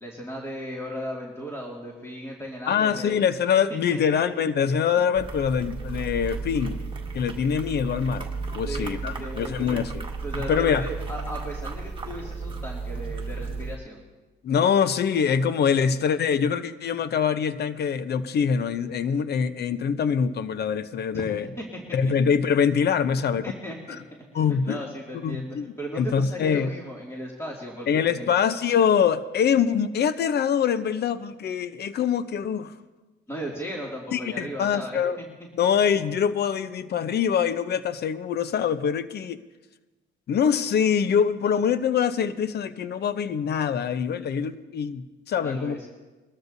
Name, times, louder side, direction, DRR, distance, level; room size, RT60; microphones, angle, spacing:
voice 1, 0.0-3.2 3.7-4.4 8.6-9.8 10.2-14.0 21.1-21.2 21.6-21.7 23.4-24.0 24.3-28.3 33.3-35.3 45.4-45.9, equal, 15° left, -3 dB, 2.4 m, -36 dB
voice 2, 2.7-6.8 7.1-8.3 8.5-10.0 10.3-10.9 14.4-21.5 21.9-23.4 24.3-24.8 25.2-26.7 27.9-32.7 34.1-35.2 35.6-39.4 40.3-45.8, left 7 dB, 55° left, 13 dB, 0.7 m, -24 dB
sound 1, 5.1-13.8, right 4 dB, 25° right, 1.6 m, -34 dB
22.0 x 13.0 x 2.7 m, 1.2 s
cardioid pair, 90°, 20 cm